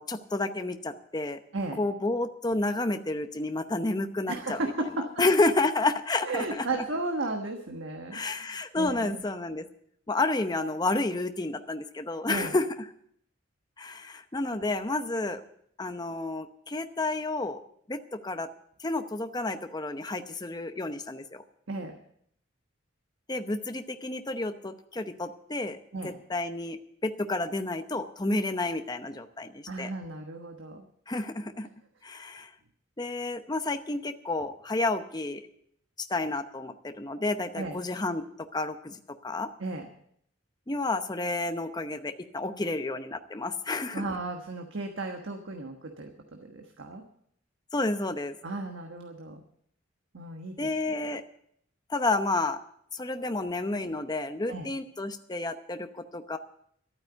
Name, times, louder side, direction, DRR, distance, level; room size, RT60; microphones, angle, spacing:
voice 1, 0.0-1.4 1.8-4.7 5.2-6.6 8.1-9.7 10.1-12.7 13.8-15.4 15.8-17.6 17.9-18.5 18.8-21.4 23.3-25.8 26.0-29.9 31.1-31.7 32.0-32.5 33.0-35.4 36.1-38.2 38.5-39.5 40.7-44.1 47.7-48.4 50.6-51.2 51.9-52.6 52.9-56.4, left 2 dB, 20° left, 8 dB, 0.8 m, -30 dB
voice 2, 4.3-5.1 6.2-9.2 12.3-12.5 21.7-22.0 25.9-26.2 29.7-30.8 37.5-37.8 39.6-39.9 43.9-47.0 48.4-49.4 50.1-50.7 54.5-54.7, right 2 dB, 70° right, 3 dB, 1.3 m, -35 dB
12.5 x 9.1 x 8.0 m, 0.69 s
head